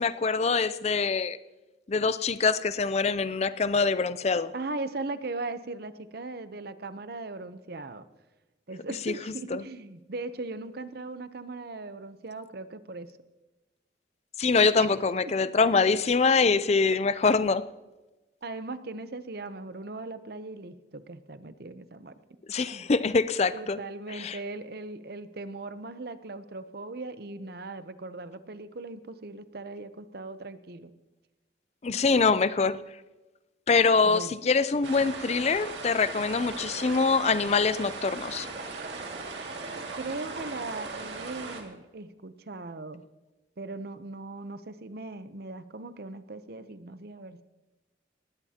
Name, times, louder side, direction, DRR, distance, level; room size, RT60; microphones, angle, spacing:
voice 1, 0.0-1.4 1.9-4.5 9.1-9.2 9.5-9.6 14.4-17.7 22.5-23.8 24.1-24.4 31.8-32.8 33.7-38.5, left 4 dB, 35° left, 15 dB, 0.5 m, -24 dB
voice 2, 4.5-8.0 8.7-13.1 14.8-14.9 15.2-15.3 18.4-22.2 22.7-22.9 23.5-30.9 34.0-34.4 39.9-43.0 43.6-47.4, right 3 dB, 55° right, 12 dB, 0.7 m, -39 dB
sound 1, 34.8-41.6, right 3 dB, 70° right, 2.2 m, -38 dB
19.5 x 16.0 x 2.9 m, 1.1 s
head